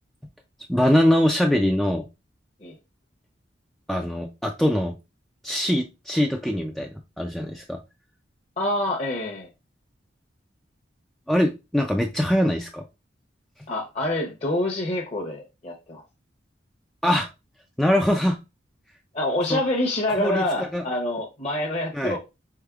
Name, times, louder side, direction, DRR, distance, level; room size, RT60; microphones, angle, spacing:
voice 1, 0.7-2.1 3.9-4.9 5.4-6.9 7.2-7.8 11.3-12.8 17.0-17.3 17.8-18.4 19.5-19.6 20.2-20.4 20.7-20.8 21.9-22.2, equal, ahead, 0.3 m, -22 dB
voice 2, 8.6-9.5 13.7-16.0 19.1-22.2, left 1 dB, 35° left, 0.8 m, -26 dB
4.8 x 3.7 x 2.3 m
head